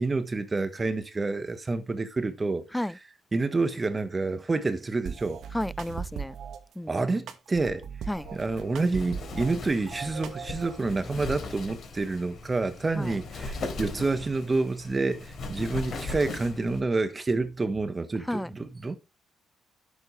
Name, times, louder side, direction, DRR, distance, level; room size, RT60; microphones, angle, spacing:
voice 1, 0.0-2.6 3.3-5.4 6.9-7.8 8.3-19.0, right 3 dB, 25° right, 1.3 m, -28 dB
sound 1, 5.1-6.6 7.3-9.6 9.9-10.8, right 7 dB, 70° right, 1.5 m, -38 dB
voice 2, 5.5-6.4 6.8-7.0 8.1-8.3 12.9-13.2 18.3-18.5, left 1 dB, 5° left, 0.4 m, -32 dB
Wind, 8.1-16.8, left 3 dB, 55° left, 3.8 m, -39 dB
10.5 x 7.4 x 3.3 m
cardioid pair, 90°, 0 cm